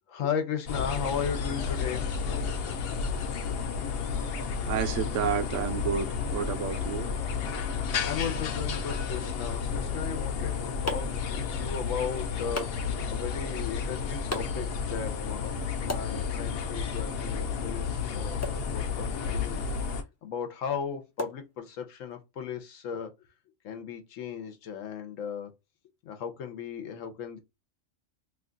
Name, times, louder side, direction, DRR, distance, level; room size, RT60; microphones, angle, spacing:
voice 1, 0.1-2.1 6.9-7.0 8.0-11.1 11.4-19.6 20.2-23.1 23.6-25.5 26.0-27.4, left 7 dB, 85° left, 1.1 m, -36 dB
sound 1, 0.7-20.0, left 6 dB, 60° left, 0.7 m, -32 dB
voice 2, 4.6-7.1, right 8 dB, 80° right, 1.0 m, -30 dB
sound 2, 10.2-22.1, left 1 dB, 25° left, 0.3 m, -43 dB
2.9 x 2.3 x 3.7 m
omnidirectional pair, 1.3 m